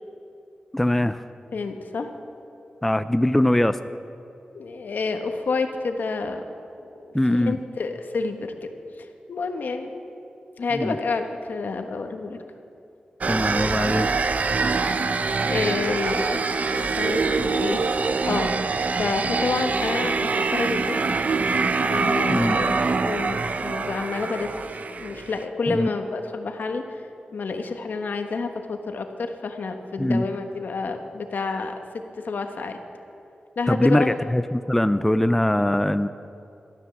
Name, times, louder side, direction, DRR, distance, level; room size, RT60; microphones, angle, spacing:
voice 1, 0.7-1.2 2.8-3.8 7.1-7.6 10.7-11.0 13.3-14.2 22.3-22.6 25.7-25.9 30.0-30.2 33.7-36.1, left 1 dB, 5° left, 11 dB, 0.4 m, -22 dB
voice 2, 1.5-2.1 4.5-6.4 6.8-8.5 9.3-9.9 10.6-12.4 15.5-16.4 16.7-18.5 18.9-21.0 21.8-27.0 27.3-31.7 32.2-32.8 33.6-34.2, left 4 dB, 75° left, 5 dB, 1.3 m, -29 dB
sound 1, 13.2-25.4, right 4 dB, 50° right, 0.6 m, -24 dB
13.5 x 12.5 x 7.2 m, 2.6 s
wide cardioid pair, 120°, 3 cm